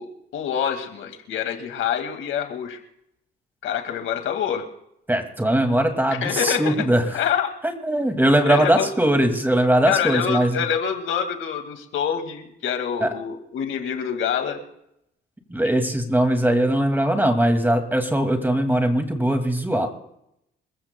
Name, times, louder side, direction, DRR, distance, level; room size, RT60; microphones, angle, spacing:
voice 1, 0.0-2.8 3.6-4.7 6.2-6.7 7.1-7.5 8.5-8.9 9.9-14.6, left 8 dB, 80° left, 6 dB, 2.0 m, -26 dB
voice 2, 5.1-7.2 7.6-10.6 13.0-13.1 15.5-19.9, right 1 dB, 10° right, 5 dB, 2.1 m, -20 dB
27.5 x 15.0 x 2.2 m, 0.79 s
cardioid pair, 90°, 20 cm